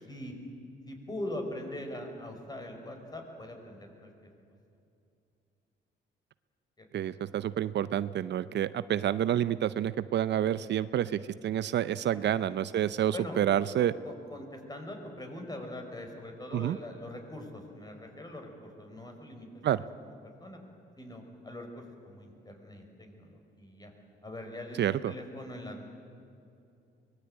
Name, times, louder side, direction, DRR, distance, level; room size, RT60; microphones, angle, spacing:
voice 1, 0.9-4.1 6.8-6.9 11.8-12.3 13.1-13.4 13.8-19.5 19.8-20.1 20.4-20.6 21.0-23.9 24.2-25.8, left 1 dB, 20° left, 3 dB, 5.2 m, -42 dB
voice 2, 6.9-13.9 16.5-16.8 19.6-19.8 24.8-25.1, right 11 dB, 60° right, 15 dB, 0.6 m, -29 dB
24.0 x 20.0 x 8.8 m, 2.6 s
cardioid pair, 90°, 20 cm